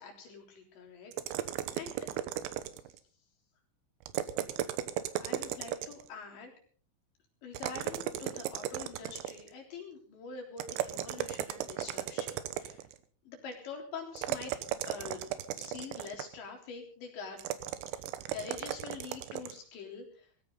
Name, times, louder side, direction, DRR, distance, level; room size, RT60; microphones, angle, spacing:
voice 1, 0.0-2.0 5.2-6.5 7.4-12.9 13.3-14.5 14.9-15.2 15.6-17.4 18.3-20.3, left 5 dB, 65° left, 1 dB, 5.8 m, -45 dB
sound 1, 1.1-3.0 4.0-6.1 7.5-9.5 10.6-12.9 14.2-16.4 17.4-19.6, right 12 dB, 90° right, 3.6 m, -36 dB
19.0 x 16.0 x 4.0 m, 0.44 s
omnidirectional pair, 5.7 m